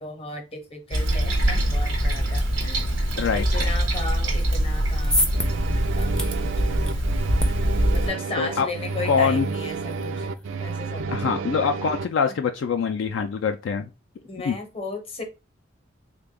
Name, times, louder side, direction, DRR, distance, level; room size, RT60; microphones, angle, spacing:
voice 1, 0.0-3.0 3.3-5.3 5.6-7.0 7.5-10.3 10.6-11.4 14.2-15.2, left 3 dB, 30° left, 5 dB, 0.8 m, -36 dB
Toilet flush, 0.9-8.1, right 1 dB, 90° right, 0.9 m, -23 dB
voice 2, 3.2-3.7 8.4-8.7 9.0-9.5 11.1-13.9 14.4-14.6, left 6 dB, 70° left, 6 dB, 0.3 m, -24 dB
sound 1, 4.7-11.0, equal, 5° left, 0.4 m, -33 dB
sound 2, 5.3-12.0, right 4 dB, 70° right, 0.3 m, -31 dB
3.4 x 2.2 x 3.7 m, 0.28 s
head